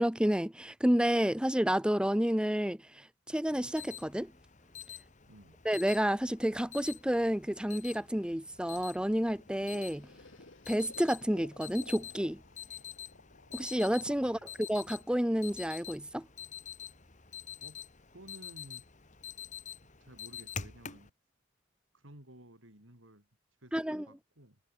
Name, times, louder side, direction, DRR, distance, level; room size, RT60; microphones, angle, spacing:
voice 1, 0.0-4.3 5.6-10.1 10.7-12.4 13.5-14.4 14.7-16.3 23.7-24.0, equal, 5° right, 0.8 m, -30 dB
Alarm, 3.5-21.1, left 8 dB, 40° left, 2.0 m, -47 dB
voice 2, 5.3-5.6 14.2-14.6 17.6-17.8 18.1-18.9 19.8-21.1 21.9-23.3 23.6-24.6, right 1 dB, 80° right, 7.6 m, -54 dB
sound 1, 9.3-16.2, left 2 dB, 75° left, 3.6 m, -56 dB
head